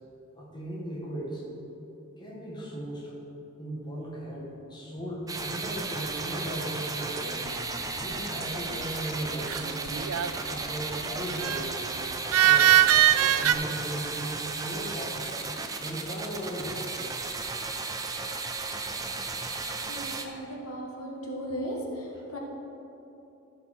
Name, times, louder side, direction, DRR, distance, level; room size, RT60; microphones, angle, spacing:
voice 1, 0.3-1.4 2.2-3.1 3.6-7.5 8.0-10.1 10.5-11.8 12.4-15.3 15.8-17.0 22.1-22.2, right 1 dB, 20° left, -5 dB, 1.7 m, -37 dB
sound 1, 5.3-20.3, right 3 dB, 15° right, 0.5 m, -35 dB
sound 2, 9.5-10.5 11.4-11.6 12.3-13.5, right 12 dB, 85° right, 0.4 m, -21 dB
voice 2, 19.9-22.4, equal, 90° left, -1 dB, 1.6 m, -36 dB
15.0 x 5.4 x 4.4 m, 3.0 s
head